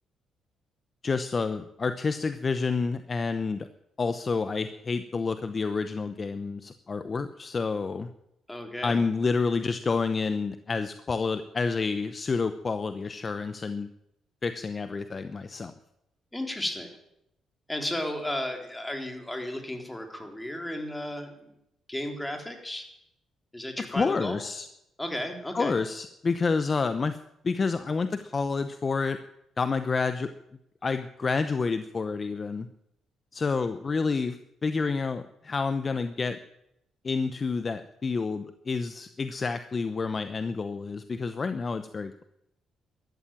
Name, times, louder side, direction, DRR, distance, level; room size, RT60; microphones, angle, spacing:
voice 1, 1.0-3.7 4.0-8.1 8.8-13.9 14.4-15.7 23.8-24.7 25.5-27.2 27.4-29.2 29.6-30.3 30.8-32.7 33.3-34.4 34.6-36.4 37.0-42.2, left 4 dB, 35° left, 10 dB, 0.8 m, -29 dB
voice 2, 8.5-9.0 16.3-16.9 17.7-21.5 21.9-22.9 23.5-24.4 25.0-25.8, left 1 dB, 10° left, 4 dB, 3.6 m, -34 dB
13.5 x 11.5 x 9.0 m, 0.81 s
cardioid pair, 90°, 0 cm